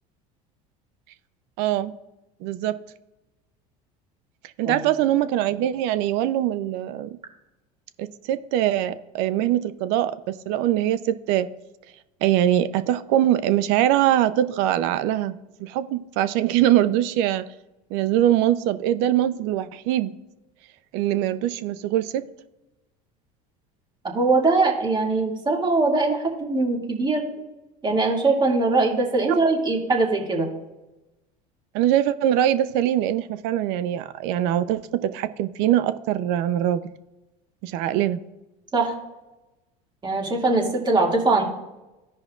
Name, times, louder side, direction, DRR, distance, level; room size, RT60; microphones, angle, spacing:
voice 1, 1.6-1.9 2.4-2.7 4.6-7.2 8.0-10.1 10.5-11.5 12.2-15.3 15.6-17.4 17.9-20.1 20.9-22.2 31.7-36.8 37.6-38.2, right 12 dB, 70° right, 13 dB, 0.6 m, -22 dB
voice 2, 24.0-27.3 27.8-30.5 38.7-38.9 40.0-41.4, right 3 dB, 25° right, 0 dB, 2.1 m, -21 dB
15.0 x 5.2 x 2.4 m, 1.0 s
supercardioid pair, 90°, 19 cm